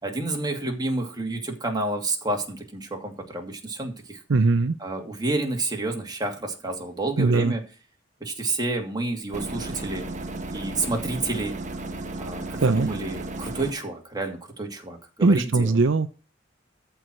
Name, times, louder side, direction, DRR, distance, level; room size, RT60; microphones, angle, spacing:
voice 1, 0.0-4.2 4.8-7.6 8.2-10.0 10.5-11.5 12.2-15.7, right 2 dB, 20° right, 2.6 m, -29 dB
voice 2, 4.3-4.7 7.2-7.5 12.6-12.9 15.2-16.1, right 3 dB, 70° right, 0.6 m, -20 dB
sound 1, 9.3-13.7, right 2 dB, 40° right, 1.3 m, -34 dB
14.0 x 4.7 x 7.7 m
head